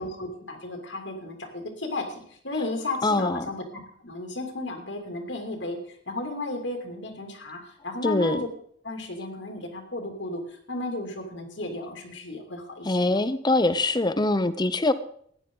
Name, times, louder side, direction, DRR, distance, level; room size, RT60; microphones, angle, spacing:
voice 1, 0.0-3.6 4.0-8.5 8.8-13.2, left 2 dB, 75° left, 3 dB, 2.8 m, -34 dB
voice 2, 3.0-3.5 8.0-8.4 12.8-14.9, left 2 dB, 25° left, 12 dB, 0.7 m, -23 dB
15.5 x 10.0 x 3.9 m, 0.62 s
head